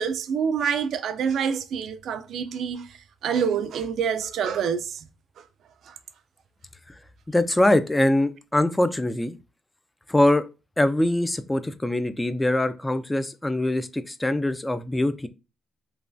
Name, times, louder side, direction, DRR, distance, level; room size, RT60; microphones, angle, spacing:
voice 1, 0.0-2.9 3.2-5.1 5.9-6.0, right 7 dB, 70° right, 0.4 m, -26 dB
voice 2, 7.3-9.4 10.1-10.4 10.8-15.3, left 1 dB, 10° left, 0.3 m, -23 dB
3.2 x 2.2 x 2.5 m
cardioid pair, 90°, 0 cm